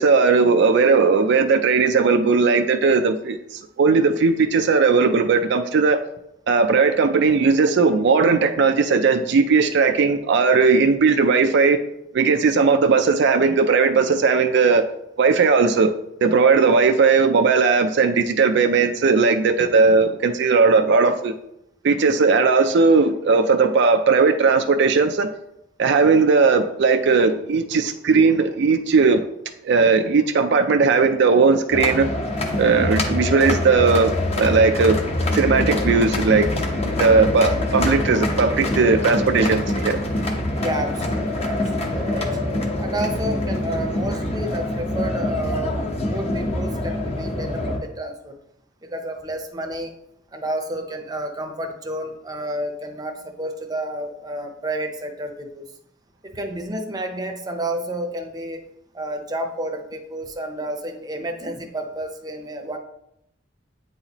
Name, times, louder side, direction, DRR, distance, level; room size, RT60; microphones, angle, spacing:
voice 1, 0.0-6.0 6.5-11.8 12.1-14.8 15.2-15.9 16.2-21.4 21.8-25.3 25.8-29.2 29.6-32.1 32.6-35.0 35.3-36.5 36.8-40.0, right 4 dB, 65° right, 6 dB, 0.4 m, -17 dB
sound 1, 31.7-47.8, left 1 dB, 35° left, 0.9 m, -25 dB
sound 2, 32.8-38.1, left 2 dB, 10° left, 0.3 m, -28 dB
voice 2, 40.6-42.4 42.8-45.8 46.1-48.4 48.9-49.9 50.3-55.7 56.2-58.6 58.9-62.8, right 1 dB, 20° right, 4 dB, 0.7 m, -30 dB
8.8 x 4.1 x 2.9 m, 0.80 s
head